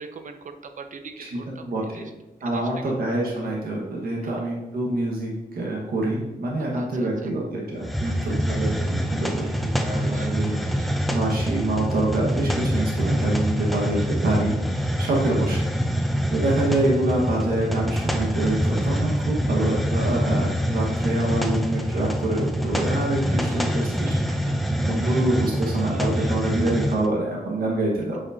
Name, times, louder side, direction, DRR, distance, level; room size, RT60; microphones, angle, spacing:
voice 1, 0.0-2.1 2.4-2.9 4.2-4.3 6.6-7.3 8.0-8.5 10.0-11.2 13.9-14.1 14.9-15.0 21.2-21.6 23.3-25.2 25.7-26.6, right 5 dB, 55° right, 7 dB, 0.6 m, -44 dB
voice 2, 1.6-2.1 2.4-10.6 11.1-15.7 16.3-24.1 24.8-28.2, right 1 dB, 85° right, -2 dB, 1.4 m, -26 dB
Hiss, 7.8-27.1, equal, ahead, 0.5 m, -25 dB
8.4 x 5.2 x 2.7 m, 1.0 s
wide cardioid pair, 130°, 15 cm